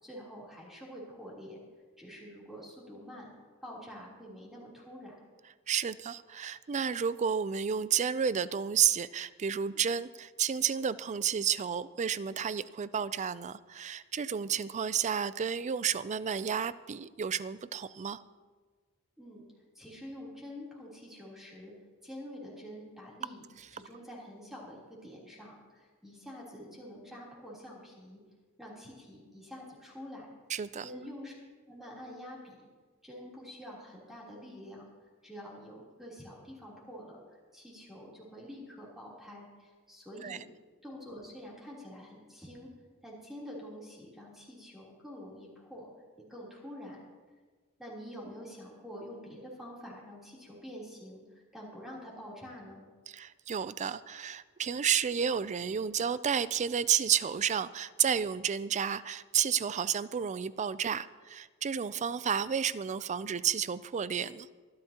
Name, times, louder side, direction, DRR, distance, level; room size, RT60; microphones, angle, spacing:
voice 1, 0.0-1.6 2.0-3.3 3.6-5.1 19.2-19.5 19.7-21.7 22.0-23.4 23.7-28.2 28.6-30.3 30.8-31.3 31.7-32.6 33.0-34.8 35.2-40.4 40.8-42.7 43.0-45.9 46.2-47.1 47.8-52.8, equal, ahead, -5 dB, 3.4 m, -47 dB
voice 2, 5.7-18.2 30.5-30.9 40.2-40.4 53.1-64.5, right 8 dB, 30° right, 16 dB, 0.4 m, -31 dB
24.5 x 11.5 x 2.9 m, 1.4 s
head